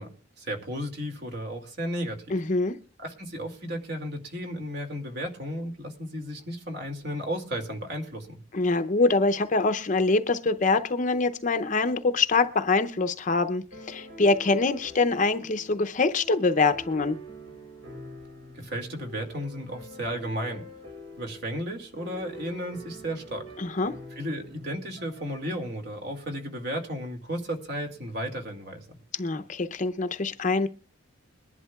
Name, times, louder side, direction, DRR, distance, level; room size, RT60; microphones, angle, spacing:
voice 1, 0.0-2.4 3.0-8.4 18.5-20.6 21.2-23.5 24.2-28.9, equal, 55° right, 3 dB, 2.3 m, -34 dB
voice 2, 2.3-2.7 8.5-17.2 23.6-23.9 29.1-30.7, left 3 dB, 40° left, 9 dB, 0.6 m, -24 dB
sound 1, 13.7-25.7, equal, 75° right, 3.7 m, -45 dB
22.0 x 11.0 x 2.3 m, 0.39 s
head